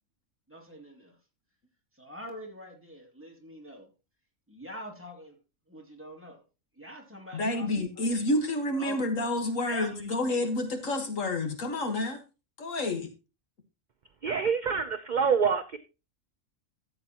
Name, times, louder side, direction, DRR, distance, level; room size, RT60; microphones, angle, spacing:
voice 1, 0.5-1.2 2.0-3.9 4.5-5.4 5.7-6.4 6.8-8.1 8.7-9.0 9.7-10.1, equal, 10° right, 0 dB, 2.3 m, -44 dB
voice 2, 7.3-12.2 12.6-13.1, left 2 dB, 75° left, 6 dB, 1.9 m, -29 dB
voice 3, 14.2-15.8, right 6 dB, 50° right, 9 dB, 0.6 m, -26 dB
13.5 x 7.8 x 2.9 m, 0.30 s
omnidirectional pair, 1.4 m